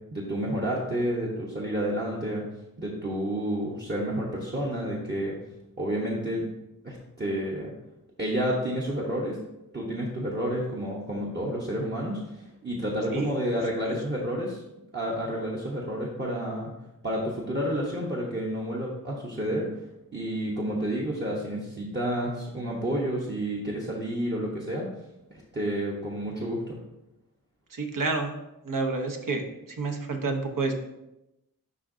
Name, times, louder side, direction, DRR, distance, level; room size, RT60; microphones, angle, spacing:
voice 1, 0.1-2.4 2.8-5.4 5.8-6.4 6.8-7.7 8.2-9.4 9.7-14.6 14.9-16.7 17.0-19.7 20.1-24.9 25.3-26.8, equal, 30° right, -3 dB, 1.0 m, -30 dB
voice 2, 27.7-28.3 28.6-30.9, right 3 dB, 70° right, 4 dB, 0.9 m, -29 dB
11.0 x 3.7 x 2.6 m, 0.91 s
wide cardioid pair, 110°, 34 cm